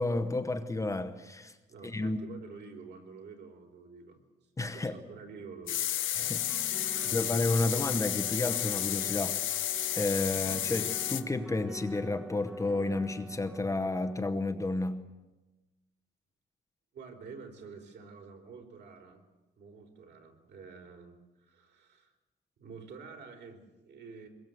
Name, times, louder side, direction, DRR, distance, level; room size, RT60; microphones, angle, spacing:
voice 1, 0.0-1.6 1.8-2.2 4.6-5.0 6.2-6.4 6.7-6.9 7.1-9.7 9.9-15.0, left 2 dB, 15° left, 8 dB, 0.9 m, -31 dB
voice 2, 1.7-4.2 4.7-6.5 6.8-7.2 16.9-19.2 19.6-22.1 22.6-24.3, right 5 dB, 60° right, 2 dB, 4.0 m, -49 dB
sound 1, 5.7-11.2, left 12 dB, 80° left, 0.9 m, -32 dB
sound 2, 6.2-14.2, right 1 dB, 5° right, 1.1 m, -47 dB
24.0 x 21.5 x 7.9 m, 1.1 s
cardioid pair, 170°, 20 cm